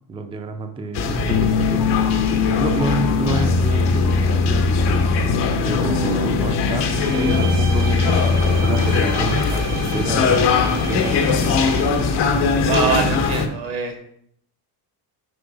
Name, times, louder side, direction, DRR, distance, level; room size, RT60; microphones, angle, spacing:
voice 1, 0.1-1.9 2.6-5.1 5.6-11.4, right 3 dB, 15° right, 7 dB, 0.4 m, -29 dB
sound 1, 0.9-13.5, left 4 dB, 70° left, 1.0 m, -21 dB
sound 2, 1.3-9.4, left 5 dB, 45° left, 0.5 m, -22 dB
voice 2, 6.4-6.7 12.7-14.1, right 5 dB, 85° right, 2 dB, 1.7 m, -24 dB
Bowed string instrument, 6.9-12.2, right 7 dB, 70° right, 1.2 m, -34 dB
5.2 x 4.0 x 4.8 m, 0.66 s
cardioid pair, 135°, 43 cm